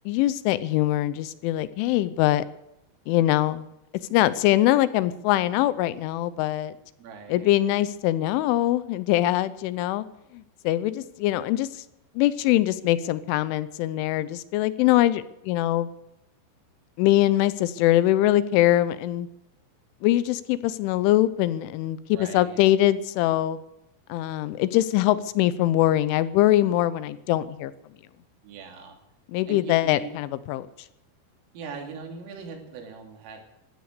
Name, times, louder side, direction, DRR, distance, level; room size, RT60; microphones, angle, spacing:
voice 1, 0.1-2.4 3.1-3.7 4.1-6.7 7.3-10.1 10.3-11.7 12.2-15.9 17.0-19.3 20.0-23.6 24.1-27.7 29.3-30.7, left 14 dB, 80° left, 16 dB, 3.1 m, -23 dB
voice 2, 7.0-7.5 22.1-22.6 28.4-29.0 29.5-30.1 31.5-33.4, right 5 dB, 90° right, 3 dB, 5.5 m, -40 dB
17.0 x 12.5 x 6.7 m, 0.86 s
omnidirectional pair, 5.7 m